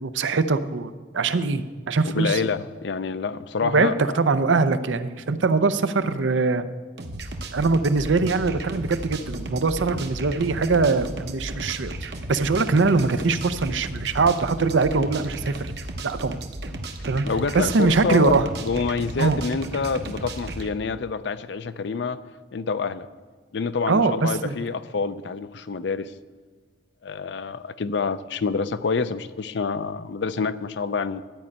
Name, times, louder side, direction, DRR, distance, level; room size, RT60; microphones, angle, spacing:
voice 1, 0.0-2.4 3.6-6.6 7.5-15.7 16.0-16.3 17.0-17.3 17.5-18.5 19.2-19.4 23.9-24.6, right 4 dB, 80° right, 11 dB, 0.6 m, -22 dB
voice 2, 2.1-4.2 9.9-10.0 17.2-22.2 22.5-23.1 23.5-26.1 27.0-31.2, left 4 dB, 70° left, 14 dB, 0.5 m, -27 dB
sound 1, 7.0-20.7, right 1 dB, 60° right, 0.9 m, -34 dB
12.0 x 5.3 x 8.6 m, 1.4 s
head